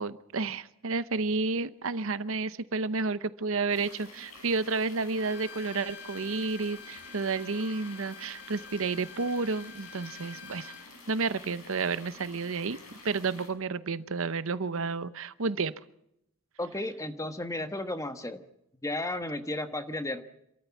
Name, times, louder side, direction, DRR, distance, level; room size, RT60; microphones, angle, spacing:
voice 1, 0.0-10.7 11.1-12.8 13.0-15.8, right 4 dB, 65° right, 14 dB, 0.8 m, -31 dB
sound 1, 3.7-13.5, left 3 dB, 80° left, 6.6 m, -50 dB
Bowed string instrument, 5.2-10.9, left 6 dB, 55° left, 2.6 m, -48 dB
voice 2, 16.6-18.4 18.8-20.2, left 1 dB, 15° left, 8 dB, 1.3 m, -33 dB
27.0 x 13.5 x 7.1 m, 0.81 s
head